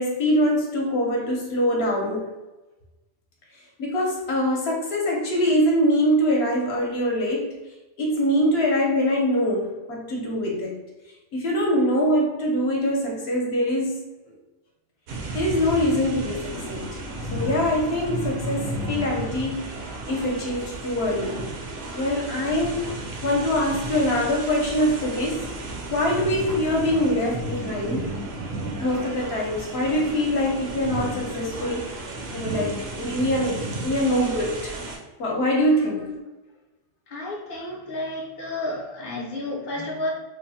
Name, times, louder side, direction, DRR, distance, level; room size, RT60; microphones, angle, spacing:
voice 1, 0.0-2.3 3.8-7.6 8.0-10.8 11.3-14.3 15.3-17.0 17.3-19.8 20.1-21.5 21.9-25.5 25.9-28.1 28.8-32.0 32.3-34.8 35.2-36.1, equal, 65° left, -1 dB, 0.9 m, -24 dB
sound 1, 15.1-35.0, right 2 dB, 65° right, 0.8 m, -33 dB
voice 2, 35.6-36.2 37.1-40.1, left 2 dB, 30° left, -3 dB, 0.5 m, -31 dB
3.1 x 2.0 x 2.6 m, 1.1 s
omnidirectional pair, 1.2 m